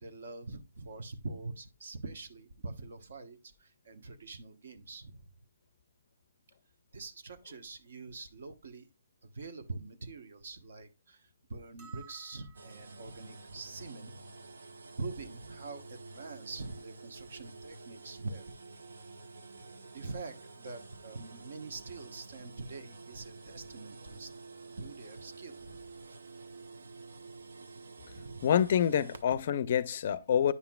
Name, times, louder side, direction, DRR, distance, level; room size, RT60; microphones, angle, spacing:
voice 1, 0.0-5.3 6.9-8.9 9.2-14.2 15.0-18.5 19.9-24.3 24.8-25.9 28.1-28.5, right 3 dB, 60° right, 1.1 m, -44 dB
sound 1, 11.8-13.1, right 8 dB, 25° right, 1.1 m, -55 dB
sound 2, 12.5-29.2, right 3 dB, 85° right, 0.9 m, -50 dB
voice 2, 28.4-30.5, left 9 dB, 40° left, 0.4 m, -27 dB
9.5 x 5.7 x 2.3 m
hypercardioid pair, 165°, 0 cm